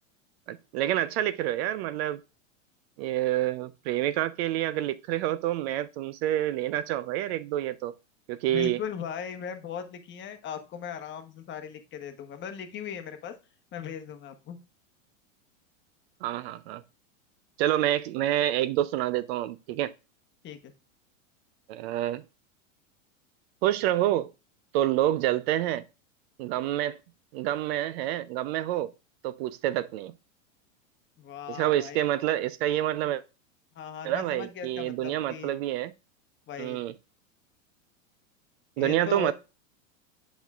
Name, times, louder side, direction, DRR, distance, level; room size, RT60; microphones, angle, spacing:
voice 1, 0.5-2.2 3.0-7.9 8.3-8.8 16.2-16.8 17.6-19.9 21.7-22.2 23.6-24.3 24.7-25.8 26.4-27.0 27.3-28.9 29.2-30.1 31.5-33.2 34.0-35.9 36.6-36.9 38.8-39.3, right 13 dB, 50° right, 0.5 m, -28 dB
voice 2, 8.5-13.3 13.7-14.6 20.4-20.7 31.2-32.0 33.7-35.6 36.5-36.8 38.8-39.3, left 8 dB, 30° left, 1.0 m, -38 dB
8.0 x 6.2 x 2.4 m
hypercardioid pair, 120°, 40 cm